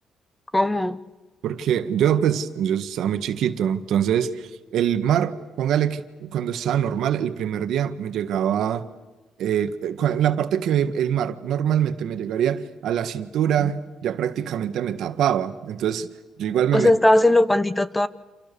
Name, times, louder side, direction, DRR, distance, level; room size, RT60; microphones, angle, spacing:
voice 1, 0.5-1.0 13.6-13.7 16.7-18.1, left 1 dB, 15° left, 1.1 m, -18 dB
voice 2, 1.4-8.8 9.4-16.1 16.4-16.9, right 9 dB, 75° right, 1.6 m, -24 dB
28.5 x 28.0 x 7.0 m
cardioid pair, 90°, 0 cm